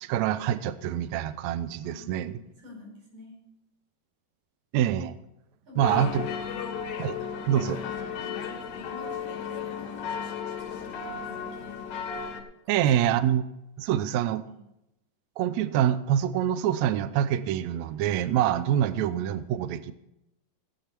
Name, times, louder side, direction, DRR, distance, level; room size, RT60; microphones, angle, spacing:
voice 1, 0.0-2.3 4.7-5.2 5.8-6.2 7.0-7.2 7.5-7.8 12.7-13.4 13.8-14.4 15.4-19.9, right 10 dB, 85° right, 13 dB, 1.6 m, -25 dB
voice 2, 1.8-3.4 5.7-6.6 8.2-11.9 12.6-13.0 14.4-14.6, left 2 dB, 60° right, -2 dB, 6.7 m, -48 dB
sound 1, 5.8-12.4, left 7 dB, 85° left, 3.2 m, -34 dB
16.5 x 8.8 x 4.5 m, 0.86 s
omnidirectional pair, 3.9 m